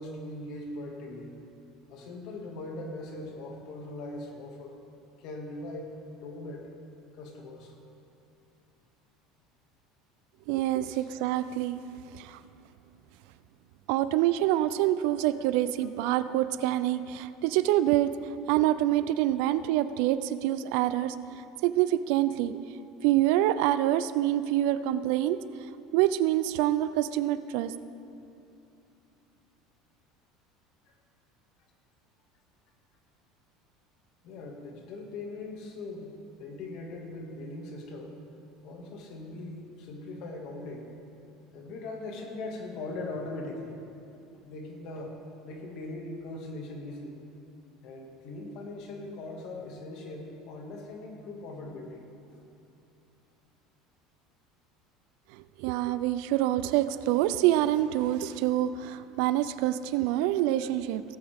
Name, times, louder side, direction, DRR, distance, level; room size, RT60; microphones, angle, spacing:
voice 1, 0.0-1.4 1.9-4.8 5.2-6.0 6.2-6.7 7.1-7.8 10.9-11.1 34.2-38.2 38.6-40.9 41.5-43.8 44.4-45.2 45.4-47.2 47.8-52.4, left 2 dB, 60° left, 1 dB, 2.0 m, -40 dB
voice 2, 10.5-11.8 12.1-12.4 13.9-18.1 18.5-22.6 23.0-25.4 25.9-27.7 55.3-61.0, right 13 dB, 70° right, 14 dB, 0.4 m, -26 dB
17.5 x 8.7 x 3.6 m, 2.7 s
supercardioid pair, 115°, 0 cm